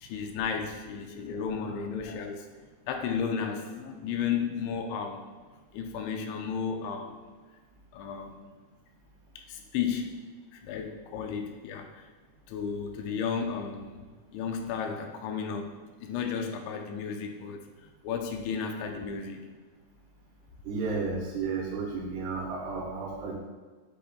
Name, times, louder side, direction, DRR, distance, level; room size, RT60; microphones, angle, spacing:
voice 1, 0.0-2.5 2.9-5.3 5.7-7.2 7.9-8.5 9.4-10.2 10.5-12.1 12.5-14.1 14.3-17.6 18.0-19.4, left 6 dB, 85° left, 4 dB, 2.9 m, -33 dB
voice 2, 20.7-23.4, right 4 dB, 80° right, -1 dB, 2.7 m, -32 dB
10.0 x 5.9 x 2.2 m, 1.4 s
omnidirectional pair, 5.3 m